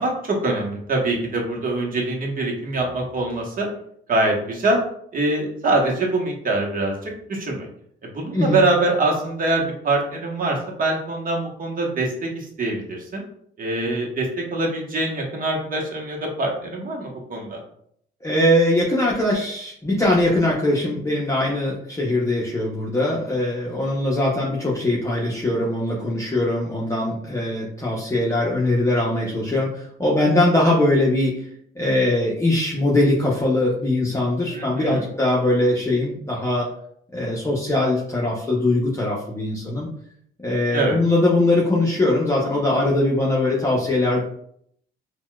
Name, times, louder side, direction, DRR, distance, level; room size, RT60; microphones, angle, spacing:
voice 1, 0.0-3.7 4.1-4.8 5.1-7.7 8.0-13.2 13.6-17.6 34.5-35.0 40.7-41.0, right 2 dB, 45° right, -1 dB, 1.0 m, -24 dB
voice 2, 18.2-31.5 31.7-36.7 37.1-39.9 40.4-44.2, left 1 dB, 15° left, -5 dB, 0.7 m, -21 dB
4.2 x 2.2 x 2.2 m, 0.68 s
cardioid pair, 90°, 20 cm